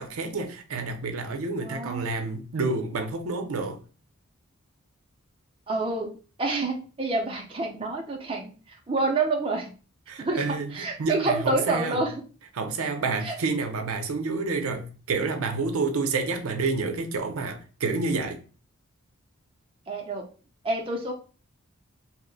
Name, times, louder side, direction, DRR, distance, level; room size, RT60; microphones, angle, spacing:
voice 1, 0.0-3.8 10.1-12.0 12.5-18.4, right 3 dB, 75° right, 0.5 m, -29 dB
voice 2, 1.6-2.1 5.7-6.1 6.4-8.5 8.9-9.7 10.2-10.4 10.7-12.2 13.2-13.4 19.9-20.3 20.6-21.1, right 3 dB, 25° right, 0.4 m, -28 dB
2.8 x 2.1 x 3.8 m
head